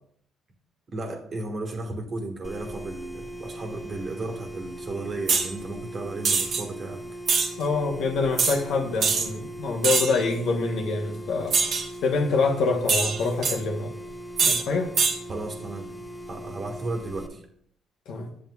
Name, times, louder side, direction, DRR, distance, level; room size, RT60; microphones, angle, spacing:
voice 1, 0.9-7.0 15.3-15.8 16.3-17.4, right 2 dB, 45° right, 3 dB, 1.4 m, -34 dB
sound 1, 2.4-17.3, right 1 dB, 20° left, 0.7 m, -39 dB
sound 2, 5.3-5.5 6.2-6.6 7.3-7.5 8.4-8.6 9.0-9.3 9.8-10.2 11.5-11.9 12.9-13.6 14.4-14.6 15.0-15.2, right 5 dB, 60° right, 1.0 m, -23 dB
voice 2, 7.6-11.6 12.0-13.9 14.4-14.9 18.1-18.3, left 4 dB, 70° left, 3 dB, 1.0 m, -26 dB
7.7 x 7.1 x 2.3 m, 0.66 s
supercardioid pair, 60°, 0 cm